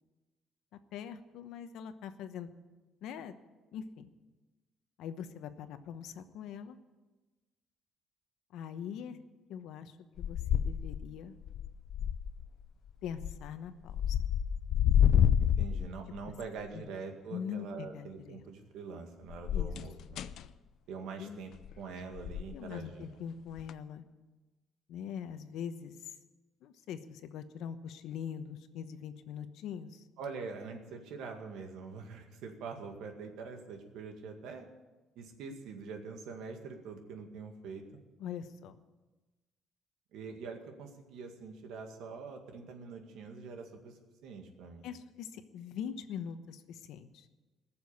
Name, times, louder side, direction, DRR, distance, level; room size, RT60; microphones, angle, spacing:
voice 1, 0.9-2.5 3.0-3.3 3.7-4.1 5.0-6.8 8.5-9.2 9.5-11.4 13.0-14.2 16.7-16.9 17.3-18.4 19.5-19.7 20.0-20.1 21.2-21.4 22.5-24.0 24.9-26.1 26.6-30.0 38.2-38.8 44.8-47.3, left 8 dB, 75° left, 10 dB, 1.0 m, -42 dB
sound 1, 10.2-11.1 11.4-12.5 13.1-13.5 13.9-16.3 19.3-20.5 21.5-21.8 22.2-22.5 23.6-23.7, left 9 dB, 55° left, 0.5 m, -29 dB
voice 2, 15.4-20.2 20.9-23.1 30.2-34.7 35.2-37.8 40.1-44.9, right 4 dB, 85° right, 4 dB, 2.1 m, -44 dB
19.0 x 7.0 x 8.3 m, 1.2 s
cardioid pair, 180°, 0 cm